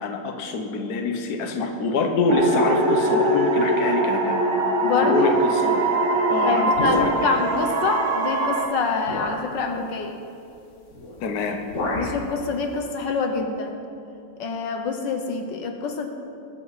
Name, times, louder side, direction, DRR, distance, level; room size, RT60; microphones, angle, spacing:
voice 1, 0.0-4.5 5.0-5.8 6.3-6.7 7.0-7.4 11.2-11.6, left 4 dB, 60° left, 4 dB, 1.5 m, -25 dB
sound 1, 2.3-8.7, right 2 dB, 80° right, 1.9 m, -22 dB
voice 2, 4.8-5.4 6.4-10.2 11.9-13.8 14.4-16.1, left 4 dB, 80° left, 4 dB, 1.6 m, -26 dB
sound 2, 6.7-7.5 8.4-8.5 9.1-9.5 10.9-11.2 11.4-12.2, left 2 dB, 45° left, 1.5 m, -29 dB
21.5 x 8.2 x 4.1 m, 2.6 s
omnidirectional pair, 1.9 m